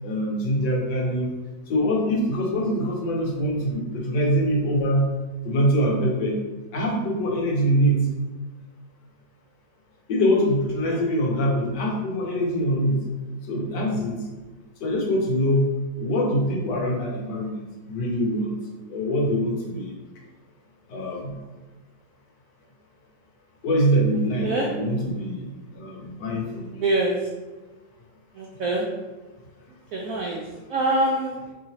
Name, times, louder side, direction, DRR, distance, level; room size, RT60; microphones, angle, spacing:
voice 1, 0.0-1.3 1.7-5.1 5.4-6.3 6.7-8.0 10.1-13.0 13.5-14.2 14.8-15.7 16.0-17.5 17.9-18.5 18.9-19.9 20.9-21.3 23.6-26.8, equal, 70° left, -2 dB, 1.4 m, -24 dB
voice 2, 26.8-27.2 28.4-28.9 29.9-30.4 30.7-31.4, right 2 dB, 80° right, -2 dB, 0.7 m, -24 dB
4.7 x 2.9 x 2.8 m, 1.2 s
omnidirectional pair, 2.0 m